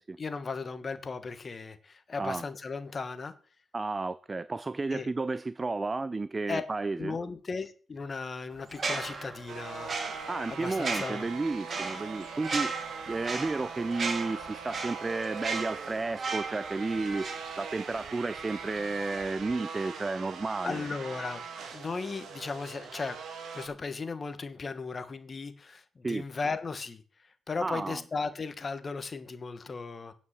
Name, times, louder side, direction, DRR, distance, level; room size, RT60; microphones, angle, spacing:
voice 1, 0.2-3.3 4.9-5.1 6.5-6.6 7.0-10.0 10.5-11.3 20.6-21.4 21.7-23.2 23.5-30.1, left 4 dB, 35° left, 1.4 m, -36 dB
voice 2, 3.7-7.2 10.3-20.8 26.0-26.2 27.6-28.0, right 3 dB, 25° right, 0.4 m, -32 dB
sound 1, 8.7-18.1 18.4-18.6, right 4 dB, 40° right, 2.1 m, -36 dB
sound 2, 9.5-23.7, right 5 dB, 65° right, 2.0 m, -42 dB
9.6 x 5.4 x 7.4 m
cardioid pair, 90°, 0 cm